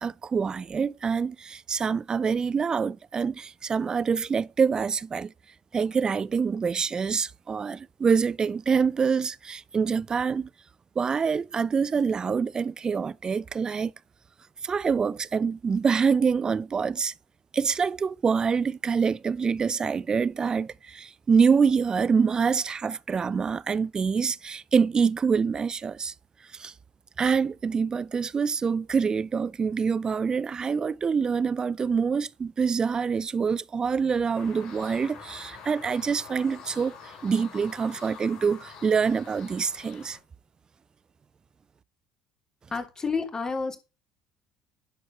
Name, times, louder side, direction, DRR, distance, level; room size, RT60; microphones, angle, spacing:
voice 1, 0.0-5.3 5.7-10.5 11.0-13.9 14.6-17.1 17.5-26.1 26.5-26.7 27.2-40.2, right 6 dB, 30° right, 0.5 m, -26 dB
sound 1, 34.3-40.2, left 6 dB, 65° left, 4.2 m, -46 dB
voice 2, 42.7-43.8, left 4 dB, 25° left, 3.1 m, -29 dB
11.5 x 4.7 x 6.5 m
hypercardioid pair, 60°, 2 cm